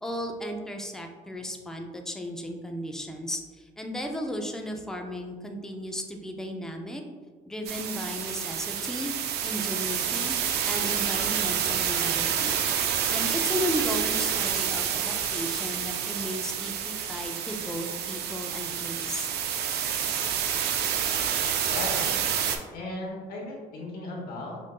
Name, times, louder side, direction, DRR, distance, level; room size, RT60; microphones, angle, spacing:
voice 1, 0.0-7.0 7.5-9.1 9.4-10.4 10.7-12.6 13.1-19.3, equal, 5° left, 3 dB, 0.4 m, -35 dB
sound 1, 7.6-22.6, right 8 dB, 75° right, 0.4 m, -28 dB
voice 2, 21.6-22.1 22.7-24.6, left 2 dB, 60° left, -2 dB, 1.1 m, -36 dB
5.2 x 2.6 x 2.2 m, 1.5 s
cardioid pair, 110°, 17 cm